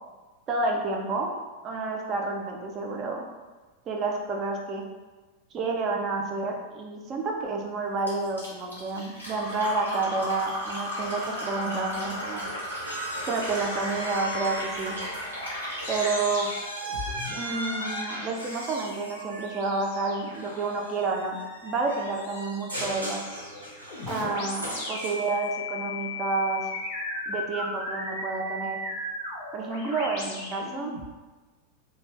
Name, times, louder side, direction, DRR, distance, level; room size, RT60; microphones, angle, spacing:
voice 1, 0.5-1.3 1.6-3.2 3.9-4.8 5.5-12.4 13.3-15.0 15.9-16.5 17.3-21.4 21.6-23.2 24.1-26.7 27.3-28.8 29.5-30.9, right 3 dB, 30° right, 1 dB, 0.5 m, -29 dB
Fill (with liquid), 8.1-16.2, equal, 85° left, 1.1 m, -34 dB
sound 1, 12.9-15.2 15.5-25.5, equal, 90° right, 0.6 m, -38 dB
sound 2, 15.8-31.1, left 2 dB, 50° left, 0.6 m, -38 dB
2.5 x 2.2 x 3.3 m, 1.3 s
figure-of-eight pair, 90°, 0 cm